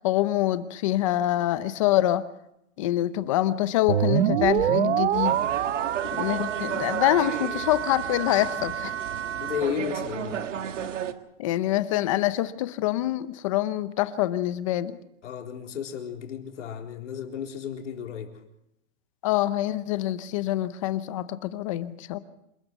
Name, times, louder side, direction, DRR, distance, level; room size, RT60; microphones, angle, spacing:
voice 1, 0.0-2.2 2.8-5.4 6.0-8.9 11.4-15.0 19.2-22.2, left 14 dB, 25° left, 14 dB, 0.8 m, -25 dB
sound 1, 3.9-9.6, right 11 dB, 60° right, 1.0 m, -27 dB
sound 2, 5.1-11.1, right 9 dB, 75° right, 1.9 m, -33 dB
voice 2, 9.4-10.5 15.2-18.3, left 8 dB, 70° left, 2 dB, 4.2 m, -33 dB
27.0 x 13.5 x 8.2 m, 0.82 s
hypercardioid pair, 175°, 37 cm